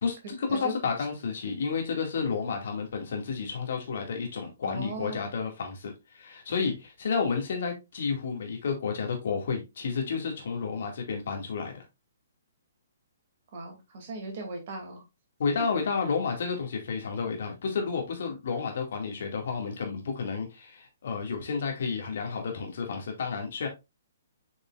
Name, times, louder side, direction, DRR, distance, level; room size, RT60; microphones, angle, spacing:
voice 1, 0.0-11.7 15.4-23.7, left 5 dB, 50° left, 2.0 m, -31 dB
voice 2, 4.6-5.3 13.5-15.0, right 2 dB, 40° right, 2.5 m, -38 dB
7.2 x 5.3 x 2.4 m
figure-of-eight pair, 125°, 0 cm